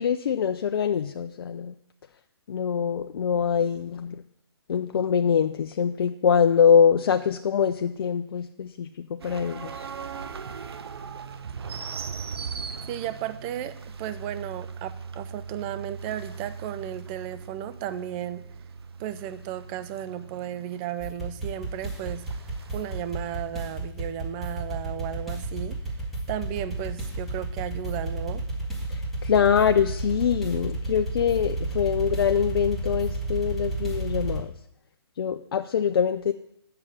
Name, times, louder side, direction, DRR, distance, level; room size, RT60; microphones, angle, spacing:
voice 1, 0.0-1.7 2.5-4.2 4.7-9.8 28.9-34.5 35.2-36.3, left 7 dB, 60° left, 7 dB, 0.5 m, -24 dB
sound 1, 9.2-23.0, right 5 dB, 70° right, 0.9 m, -39 dB
voice 2, 12.9-18.4 19.0-22.4 22.7-25.8 26.3-28.4, right 11 dB, 25° right, 12 dB, 0.5 m, -34 dB
sound 2, 21.0-34.4, right 2 dB, ahead, 1.9 m, -32 dB
8.1 x 6.7 x 7.2 m, 0.75 s
hypercardioid pair, 140°, 14 cm